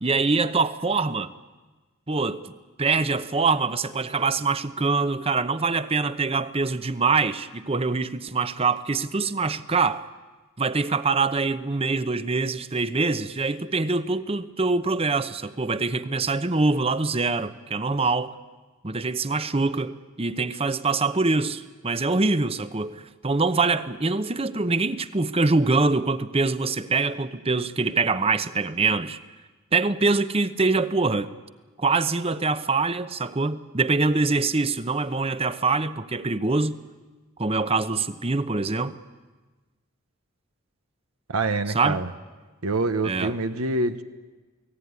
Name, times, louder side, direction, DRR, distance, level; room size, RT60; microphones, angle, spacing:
voice 1, 0.0-1.3 2.1-2.4 2.8-10.1 10.6-18.4 18.8-29.2 29.7-31.3 31.8-36.8 37.4-39.0 41.7-42.0 43.0-43.3, right 3 dB, 25° right, 0.8 m, -24 dB
voice 2, 41.3-42.1 42.6-44.0, right 2 dB, 85° right, 1.2 m, -26 dB
29.0 x 19.0 x 9.6 m
head